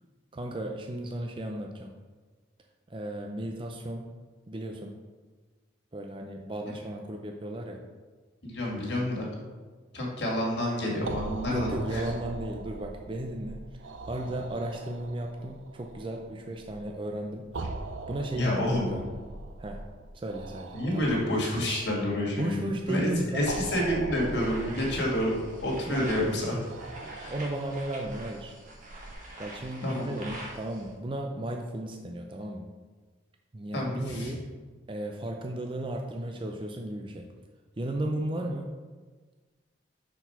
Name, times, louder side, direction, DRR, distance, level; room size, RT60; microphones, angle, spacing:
voice 1, 0.3-1.9 2.9-4.1 4.5-5.0 5.9-7.8 11.5-13.8 14.1-17.5 18.1-19.0 19.6-19.9 20.1-21.1 22.4-23.5 25.9-26.2 27.0-28.6 29.4-32.7 33.5-34.4 34.9-37.2 37.8-38.7, right 1 dB, 25° right, 2 dB, 0.5 m, -35 dB
voice 2, 8.4-9.3 9.9-12.0 18.3-19.0 20.7-23.1 23.3-26.5 27.1-27.3 29.8-30.3 33.7-34.3, left 1 dB, 60° left, -3 dB, 2.0 m, -29 dB
sound 1, 11.0-29.1, right 2 dB, 80° right, 0.5 m, -42 dB
sound 2, 24.2-30.9, right 1 dB, 45° right, 1.4 m, -45 dB
6.0 x 4.6 x 5.6 m, 1.4 s
head